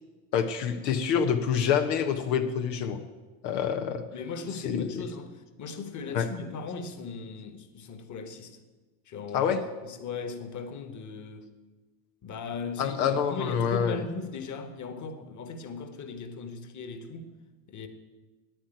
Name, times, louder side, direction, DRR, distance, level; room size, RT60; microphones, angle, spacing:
voice 1, 0.3-3.0 3.4-4.0 4.6-5.0 6.1-6.3 9.3-9.6 12.8-14.0, left 7 dB, 80° left, 1.1 m, -27 dB
voice 2, 3.7-8.6 9.0-11.5 12.2-17.3 17.7-17.9, left 5 dB, 35° left, 1.6 m, -38 dB
9.4 x 8.8 x 9.2 m
hypercardioid pair, 90°, 49 cm